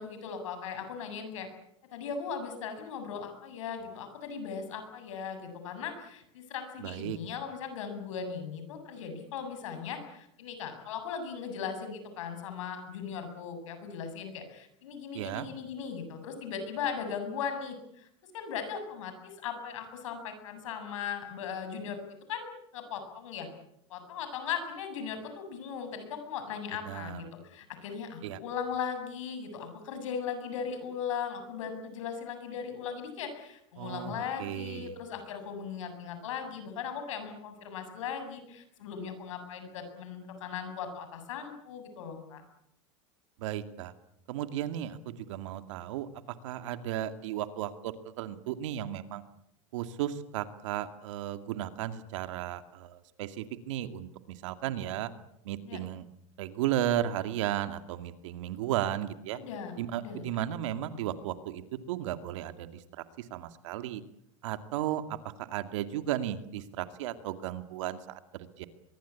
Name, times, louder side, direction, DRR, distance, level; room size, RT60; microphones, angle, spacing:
voice 1, 0.0-1.5 1.9-18.1 18.3-22.0 22.3-23.5 23.9-42.4 55.6-55.8 59.3-60.3, left 7 dB, 80° left, 7 dB, 7.5 m, -38 dB
voice 2, 6.8-7.2 15.1-15.5 26.9-27.2 28.2-28.4 33.8-35.0 43.4-43.9 44.3-46.1 46.4-49.2 49.7-55.1 55.4-56.0 56.4-59.4 59.8-61.6 61.9-62.8 63.2-64.0 64.4-68.7, right 12 dB, 75° right, 10 dB, 2.3 m, -34 dB
23.0 x 23.0 x 8.5 m, 0.79 s
supercardioid pair, 120°, 16 cm